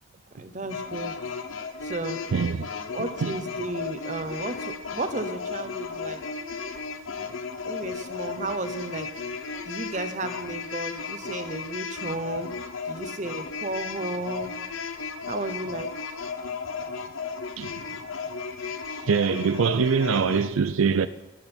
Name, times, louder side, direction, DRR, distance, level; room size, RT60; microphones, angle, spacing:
voice 1, 0.4-1.1 1.8-2.2 2.9-6.2 7.6-9.1 9.7-12.5 12.9-14.5 15.3-15.9, right 2 dB, 35° right, 0.9 m, -33 dB
sound 1, 0.7-20.5, left 5 dB, 80° left, 0.8 m, -35 dB
voice 2, 2.3-2.7 3.2-3.4 17.6-17.7 18.9-21.1, right 6 dB, 85° right, 0.4 m, -23 dB
12.5 x 12.0 x 4.4 m
head